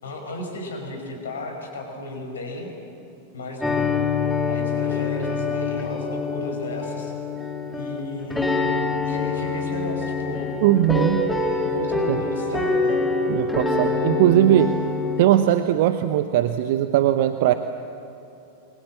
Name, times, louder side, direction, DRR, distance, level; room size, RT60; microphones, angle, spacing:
voice 1, 0.0-2.7 3.3-3.9 4.5-7.1 7.7-8.5 9.0-10.5 11.6-13.0, left 1 dB, 65° left, 3 dB, 5.7 m, -34 dB
sound 1, 3.6-15.3, left 3 dB, 5° left, 3.1 m, -25 dB
voice 2, 10.6-11.2 12.1-12.2 13.3-14.8 15.2-17.5, right 12 dB, 50° right, 10 dB, 0.9 m, -19 dB
28.5 x 23.5 x 7.6 m, 2.8 s
figure-of-eight pair, 90°, 0 cm